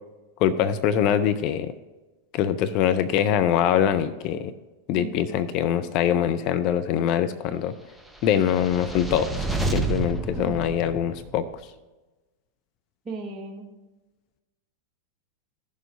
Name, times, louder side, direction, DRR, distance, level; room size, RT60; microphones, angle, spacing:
voice 1, 0.4-1.7 2.3-4.5 4.9-7.7 8.2-11.5, left 9 dB, 40° left, 10 dB, 0.6 m, -23 dB
voice 2, 5.0-5.3 10.4-10.7 13.1-13.7, right 3 dB, 25° right, 0 dB, 1.7 m, -36 dB
sound 1, 8.1-11.5, right 3 dB, ahead, 0.8 m, -30 dB
16.5 x 6.6 x 2.8 m, 1.1 s
figure-of-eight pair, 90°, 0 cm